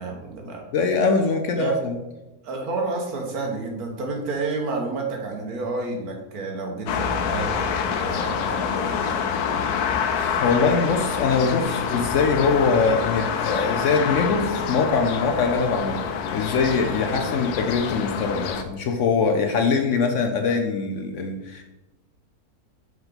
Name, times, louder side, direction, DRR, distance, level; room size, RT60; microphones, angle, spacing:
voice 1, 0.0-0.6 1.2-1.8 2.4-9.3 17.0-17.3, right 3 dB, 85° right, 1 dB, 1.6 m, -30 dB
voice 2, 0.7-2.0 9.6-21.6, left 4 dB, 65° left, 4 dB, 0.8 m, -23 dB
sound 1, 6.9-18.6, left 7 dB, 90° left, 1.1 m, -27 dB
6.4 x 4.8 x 3.8 m, 1.0 s
omnidirectional pair, 1.6 m